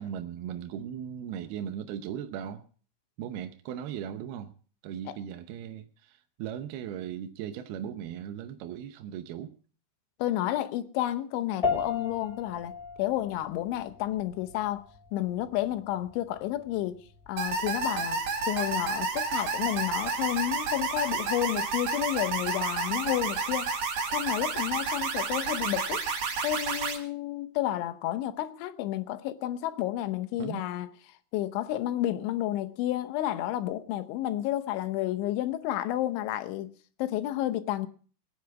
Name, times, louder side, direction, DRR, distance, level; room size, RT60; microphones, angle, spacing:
voice 1, 0.0-2.6 3.2-4.5 4.8-9.5 30.4-30.6, right 9 dB, 75° right, 2.4 m, -38 dB
voice 2, 10.2-14.8 15.1-18.2 18.5-23.7 24.1-26.0 26.4-30.9 31.3-36.7 37.0-37.9, left 13 dB, 80° left, 3.3 m, -31 dB
sound 1, 11.6-21.2, left 5 dB, 15° left, 2.8 m, -38 dB
sound 2, 17.4-27.0, right 4 dB, 60° right, 3.5 m, -30 dB
22.0 x 10.0 x 4.6 m
omnidirectional pair, 5.4 m